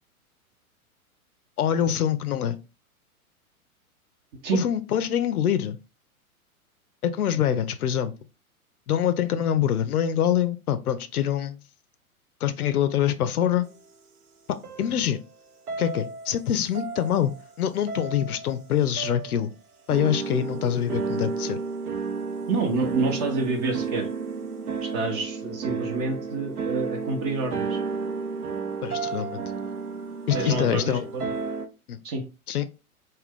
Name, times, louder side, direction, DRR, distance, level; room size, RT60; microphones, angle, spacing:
voice 1, 1.6-2.6 4.5-5.8 7.0-8.1 8.9-11.6 12.4-13.7 14.5-15.2 15.8-17.3 17.6-19.5 19.9-21.6 28.8-29.4 30.3-31.1 31.9-32.0 32.5-32.6, left 10 dB, 80° left, 0.5 m, -25 dB
sound 1, 14.6-15.3 15.7-16.4 16.7-17.5 17.9-18.6 19.0-19.4 19.9-31.7, right 5 dB, 85° right, 0.7 m, -32 dB
voice 2, 22.5-24.1 24.8-27.8 30.3-31.3 32.0-32.2, right 3 dB, 30° right, 0.5 m, -28 dB
2.5 x 2.2 x 3.5 m
figure-of-eight pair, 105°, 44 cm